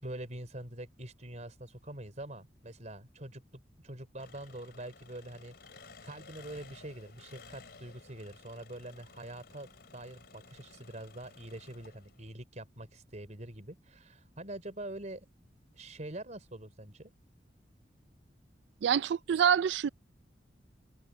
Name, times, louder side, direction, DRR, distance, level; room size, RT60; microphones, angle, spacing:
voice 1, 0.0-3.4 3.8-9.7 9.9-15.3 15.7-17.1, right 1 dB, 45° right, 4.1 m, -45 dB
Engine, 4.2-12.3, left 4 dB, 65° left, 4.4 m, -55 dB
voice 2, 18.8-19.9, right 8 dB, 75° right, 0.4 m, -26 dB
head